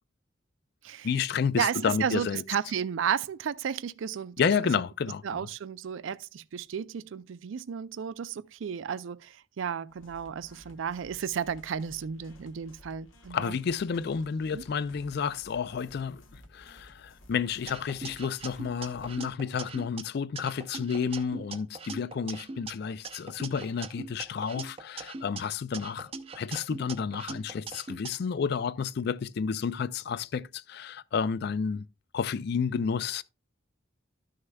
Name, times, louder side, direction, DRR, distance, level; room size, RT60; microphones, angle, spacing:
voice 1, 1.0-2.4 4.4-5.5 13.3-31.8 32.1-33.2, left 6 dB, 55° left, 0.3 m, -31 dB
voice 2, 1.6-4.4 5.2-13.6 14.5-14.6, right 7 dB, 75° right, 0.4 m, -33 dB
sound 1, 9.9-19.3, left 1 dB, 90° left, 1.4 m, -55 dB
sound 2, 17.7-20.0 20.4-22.7 23.0-25.4 25.7-28.1, right 4 dB, 30° right, 0.6 m, -41 dB
12.5 x 6.4 x 2.2 m
head